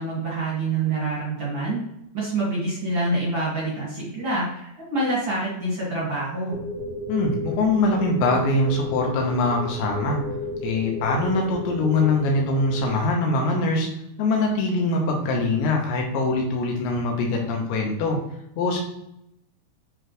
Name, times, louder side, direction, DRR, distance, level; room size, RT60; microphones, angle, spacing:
voice 1, 0.0-1.8 2.1-6.6, right 2 dB, 45° right, -7 dB, 1.6 m, -26 dB
sound 1, 6.5-13.0, left 1 dB, 70° right, 0.8 m, -33 dB
voice 2, 7.1-10.2 10.6-13.9 14.2-18.2 18.6-18.8, left 2 dB, 85° left, 0 dB, 3.4 m, -23 dB
9.7 x 3.3 x 3.1 m, 0.80 s
omnidirectional pair, 5.1 m